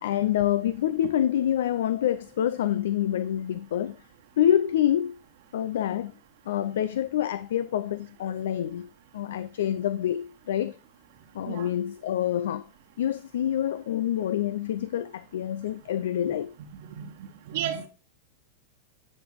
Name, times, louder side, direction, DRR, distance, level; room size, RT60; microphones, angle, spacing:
voice 1, 0.0-4.0 4.4-5.2 5.5-6.1 6.5-8.9 9.1-10.7 11.3-12.6 13.0-16.5, left 11 dB, 70° left, 0.4 m, -27 dB
voice 2, 17.5-17.9, right 10 dB, 65° right, 1.2 m, -32 dB
10.0 x 5.2 x 3.4 m
hypercardioid pair, 100°, 0 cm